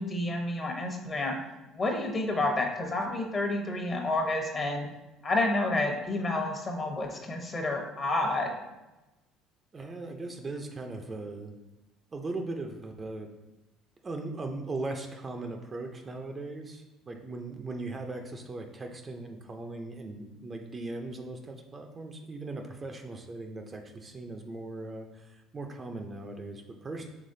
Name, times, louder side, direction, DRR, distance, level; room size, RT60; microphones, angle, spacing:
voice 1, 0.0-1.3 1.7-4.9 5.2-8.5, left 2 dB, 35° left, 2 dB, 1.0 m, -29 dB
voice 2, 9.7-11.5 12.1-13.3 14.0-27.1, right 2 dB, 30° right, 4 dB, 0.5 m, -39 dB
5.0 x 3.5 x 2.7 m, 1.0 s
supercardioid pair, 80°, 0 cm